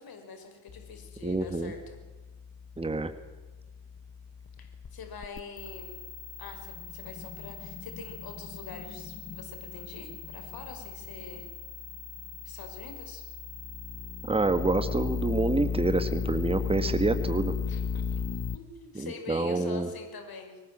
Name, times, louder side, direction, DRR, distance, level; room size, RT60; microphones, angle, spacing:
voice 1, 0.0-2.0 4.6-6.0 6.4-11.5 12.4-13.2 17.7-20.6, left 5 dB, 50° left, 6 dB, 5.5 m, -45 dB
sound 1, 0.7-18.6, left 6 dB, 35° left, 1.5 m, -37 dB
voice 2, 1.2-1.7 2.8-3.1 14.2-17.6 19.0-19.9, right 2 dB, 10° right, 9 dB, 1.8 m, -27 dB
23.0 x 19.5 x 7.7 m, 1.2 s
supercardioid pair, 85°, 46 cm